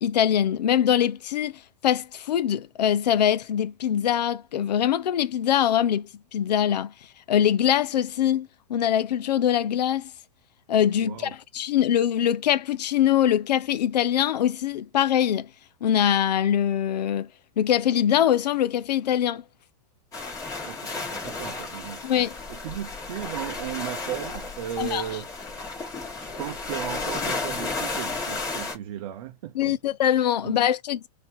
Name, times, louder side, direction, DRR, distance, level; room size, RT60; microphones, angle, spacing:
voice 1, 0.0-6.9 7.3-10.1 10.7-15.5 15.8-17.3 17.6-19.4 22.0-22.3 24.8-25.0 29.6-31.1, left 10 dB, 90° left, 0.6 m, -23 dB
voice 2, 11.0-11.3 20.6-22.0 22.5-25.3 26.2-29.8 30.4-30.6, right 11 dB, 55° right, 0.6 m, -36 dB
sound 1, 20.1-28.8, left 3 dB, 15° left, 1.6 m, -33 dB
3.9 x 2.7 x 3.9 m
hypercardioid pair, 145°, 21 cm